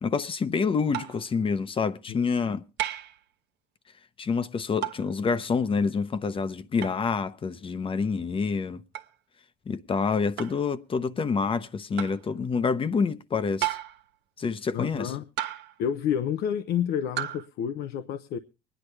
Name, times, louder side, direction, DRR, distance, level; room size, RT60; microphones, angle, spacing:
voice 1, 0.0-2.6 4.2-8.8 9.7-13.8 14.4-15.1, left 5 dB, 30° left, 0.8 m, -27 dB
sound 1, 0.9-1.3 2.8-3.2 4.8-5.1 6.8-7.0 8.9-9.1 10.4-10.6 12.0-12.2 13.6-14.1 15.4-15.8 17.2-17.5, right 12 dB, 80° right, 0.9 m, -33 dB
voice 2, 2.1-2.6 14.7-15.2 15.8-18.4, left 9 dB, 80° left, 0.7 m, -30 dB
24.5 x 10.0 x 3.3 m
cardioid pair, 110°, 17 cm